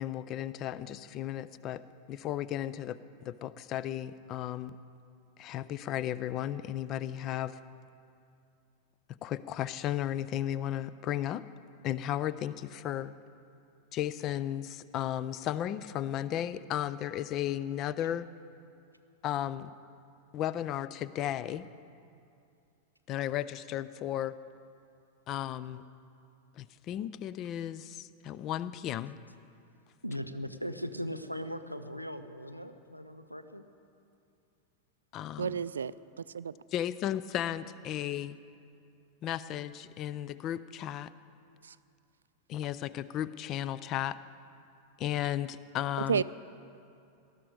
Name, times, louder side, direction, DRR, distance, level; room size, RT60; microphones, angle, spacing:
voice 1, 0.0-1.8 2.1-3.0 3.2-4.7 5.4-7.6 9.2-11.4 11.8-13.1 13.9-18.3 19.2-19.7 20.3-21.7 23.1-24.3 25.3-25.8 26.6-29.2 35.1-35.5 36.7-38.4 39.2-41.1 42.5-44.2 45.0-46.2, left 11 dB, 35° left, 16 dB, 0.4 m, -34 dB
voice 2, 30.0-33.6, equal, 90° left, 10 dB, 0.6 m, -39 dB
voice 3, 35.4-36.5 41.6-41.8 46.1-46.2, right 7 dB, 70° right, 17 dB, 0.3 m, -32 dB
19.0 x 12.0 x 4.8 m, 2.5 s
figure-of-eight pair, 90°, 0 cm